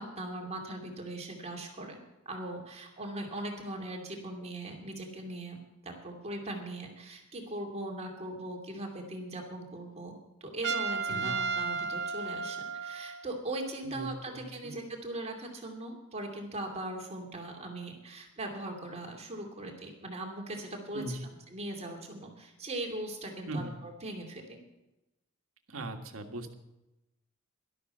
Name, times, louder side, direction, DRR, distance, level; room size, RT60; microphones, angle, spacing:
voice 1, 0.0-2.0 2.3-10.1 10.4-21.1 21.5-24.6, right 1 dB, 30° right, 1 dB, 2.6 m, -40 dB
Trumpet, 10.6-13.3, right 5 dB, 55° right, 1.0 m, -33 dB
voice 2, 11.1-11.4 13.8-14.7 20.9-21.3 23.5-23.7 25.7-26.5, right 1 dB, 75° right, 5 dB, 1.7 m, -39 dB
13.0 x 12.0 x 5.5 m, 0.96 s
head